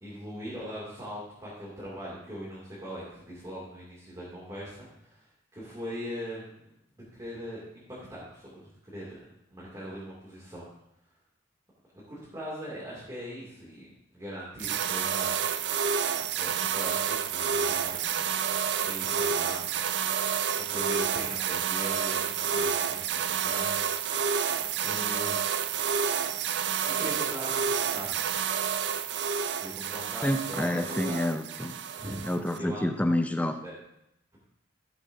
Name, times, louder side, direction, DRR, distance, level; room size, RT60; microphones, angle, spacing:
voice 1, 0.0-5.2 5.5-6.5 7.1-7.8 8.1-9.2 9.5-10.7 12.1-13.9 14.1-15.4 16.3-18.3 18.5-19.8 20.6-23.9 24.8-25.4 26.8-28.2 29.6-31.2 32.0-32.2 32.6-32.9 33.6-33.7, equal, 20° right, -7 dB, 2.6 m, -40 dB
sound 1, 14.6-32.6, right 7 dB, 60° right, 0.4 m, -29 dB
voice 2, 30.2-31.8 32.2-33.6, left 1 dB, 5° left, 6 dB, 0.5 m, -28 dB
14.5 x 8.0 x 2.7 m, 0.80 s
head